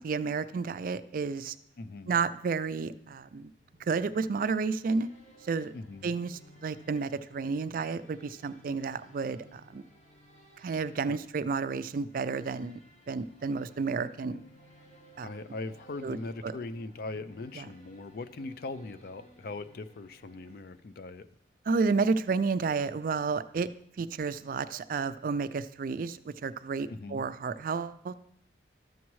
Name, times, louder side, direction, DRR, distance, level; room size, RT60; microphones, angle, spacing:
voice 1, 0.0-1.5 2.1-3.5 3.8-5.1 5.4-5.7 6.0-9.8 10.6-12.8 13.1-14.4 15.2-15.3 16.0-16.5 17.6-17.7 21.7-23.7 24.0-28.1, right 4 dB, 50° right, 13 dB, 0.3 m, -31 dB
voice 2, 1.8-2.1 5.7-6.1 11.1-11.2 15.2-21.3 26.9-27.2, left 3 dB, 55° left, 13 dB, 0.4 m, -40 dB
sound 1, 3.5-21.2, right 1 dB, 40° left, 1.5 m, -59 dB
12.5 x 7.2 x 3.1 m, 0.70 s
head